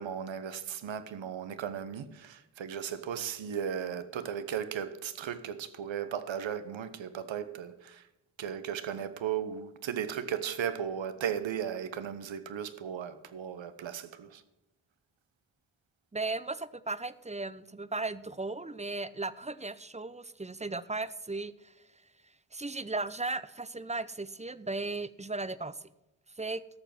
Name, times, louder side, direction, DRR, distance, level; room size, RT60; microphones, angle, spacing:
voice 1, 0.0-8.1 8.4-14.4, right 8 dB, 80° right, 1.0 m, -36 dB
voice 2, 16.1-21.7 22.5-25.8 26.4-26.6, right 3 dB, 15° right, 0.7 m, -36 dB
12.5 x 7.0 x 6.0 m
cardioid pair, 45°, 45 cm